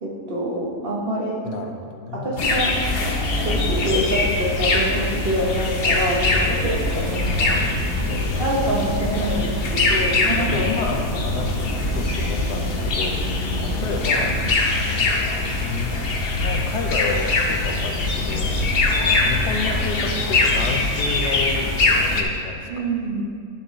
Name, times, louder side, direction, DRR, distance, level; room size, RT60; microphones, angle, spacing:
voice 1, 0.0-1.4 2.1-2.8 3.4-7.5 8.4-10.7 22.7-23.2, right 1 dB, 40° right, -3 dB, 1.1 m, -26 dB
voice 2, 1.4-2.4 4.9-5.2 7.4-8.4 10.4-13.2 13.5-14.4 14.8-15.2 15.6-15.9 16.4-18.5 19.2-22.9, left 4 dB, 85° left, 4 dB, 1.3 m, -31 dB
sound 1, 2.4-22.2, left 2 dB, 45° left, 0.8 m, -22 dB
sound 2, 7.0-14.5, equal, 85° right, 2.1 m, -30 dB
11.0 x 7.1 x 3.1 m, 2.2 s
omnidirectional pair, 1.7 m